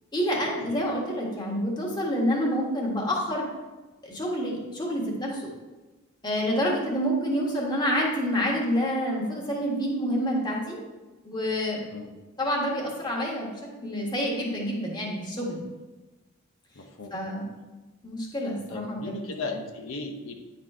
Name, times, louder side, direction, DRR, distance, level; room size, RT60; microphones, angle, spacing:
voice 1, 0.1-3.5 4.0-5.4 6.2-10.8 11.2-11.8 12.4-13.5 13.8-15.6 17.1-17.5 18.0-19.2, equal, 20° left, -3 dB, 1.6 m, -28 dB
voice 2, 16.7-17.2 18.7-20.4, left 3 dB, 85° left, 3 dB, 0.8 m, -36 dB
9.8 x 4.3 x 4.3 m, 1.2 s
head